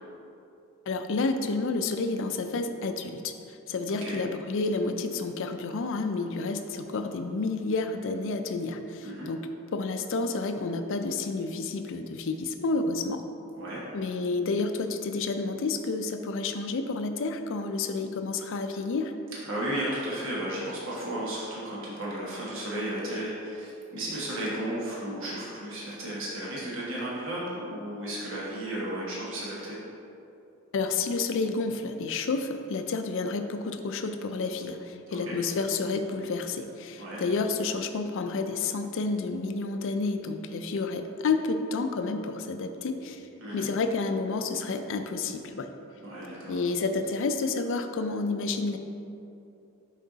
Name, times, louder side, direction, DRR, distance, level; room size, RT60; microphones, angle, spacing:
voice 1, 0.9-9.4 9.7-13.2 13.9-19.1 30.7-43.3 43.5-45.7 46.5-48.8, left 3 dB, 65° left, 7 dB, 0.4 m, -30 dB
voice 2, 3.9-4.2 9.0-9.3 13.5-13.8 19.4-29.8 35.1-35.4 37.0-37.2 43.4-43.7 46.0-46.6, right 1 dB, 65° right, -6 dB, 1.3 m, -34 dB
6.3 x 4.6 x 4.0 m, 2.8 s
head